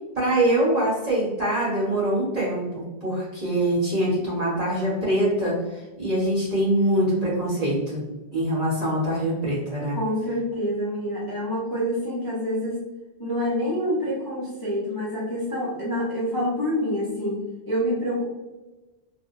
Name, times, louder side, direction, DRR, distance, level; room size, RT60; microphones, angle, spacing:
voice 1, 0.1-5.5 6.0-8.0 8.3-10.0, right 1 dB, 35° right, -9 dB, 1.6 m, -24 dB
voice 2, 9.9-12.8 13.2-17.4 17.7-18.2, equal, 20° left, -9 dB, 0.9 m, -27 dB
3.3 x 2.5 x 2.5 m, 1.1 s
omnidirectional pair, 1.1 m